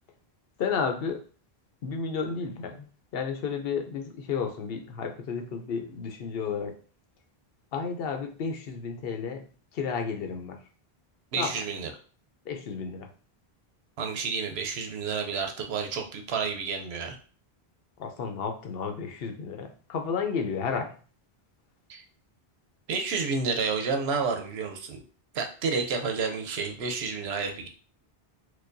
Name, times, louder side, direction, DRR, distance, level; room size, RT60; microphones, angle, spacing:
voice 1, 0.6-1.2 1.8-6.7 7.7-9.4 9.7-10.6 11.3-11.5 12.5-13.1 18.0-20.9, left 5 dB, 70° left, 4 dB, 0.8 m, -32 dB
voice 2, 11.3-11.9 14.0-17.2 21.9-22.0 22.9-25.0 25.3-27.7, right 5 dB, 85° right, 4 dB, 0.9 m, -30 dB
4.5 x 2.2 x 2.6 m, 0.40 s
omnidirectional pair, 1.1 m